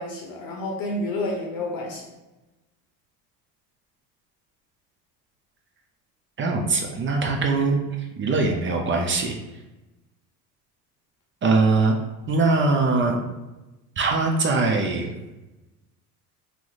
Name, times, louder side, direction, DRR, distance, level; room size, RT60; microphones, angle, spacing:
voice 1, 0.0-2.1, left 1 dB, 50° left, 0 dB, 0.7 m, -29 dB
voice 2, 6.4-7.7 8.2-9.4 11.4-12.0 12.3-13.2 14.0-15.1, right 3 dB, 25° right, 2 dB, 0.4 m, -21 dB
2.9 x 2.0 x 3.8 m, 1.0 s
hypercardioid pair, 75°, 47 cm